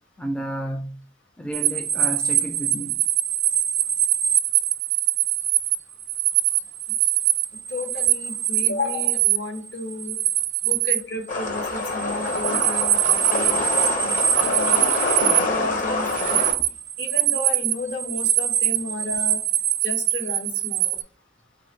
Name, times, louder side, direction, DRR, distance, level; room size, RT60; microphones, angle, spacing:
voice 1, 0.2-1.0 1.4-3.0, right 1 dB, 5° left, 0.3 m, -31 dB
sound 1, 1.5-15.4 15.8-21.0, right 11 dB, 65° right, 0.4 m, -23 dB
voice 2, 7.7-10.2 10.6-13.7 14.0-14.9 15.1-16.4 17.0-19.4 19.8-21.0, left 2 dB, 70° left, 1.0 m, -32 dB
sound 2, 11.3-16.5, left 2 dB, 45° left, 0.8 m, -26 dB
3.8 x 2.5 x 4.3 m
head